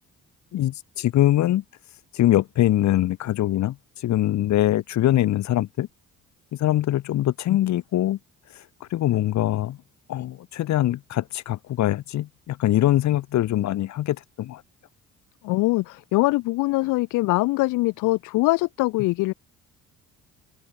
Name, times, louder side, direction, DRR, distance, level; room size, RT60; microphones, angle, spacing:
voice 1, 0.5-1.6 2.1-5.9 6.6-8.2 8.9-9.8 10.1-14.6, left 13 dB, 70° left, 0.8 m, -23 dB
voice 2, 15.4-19.3, left 21 dB, 90° left, 0.5 m, -23 dB
open air
cardioid pair, 90°, 30 cm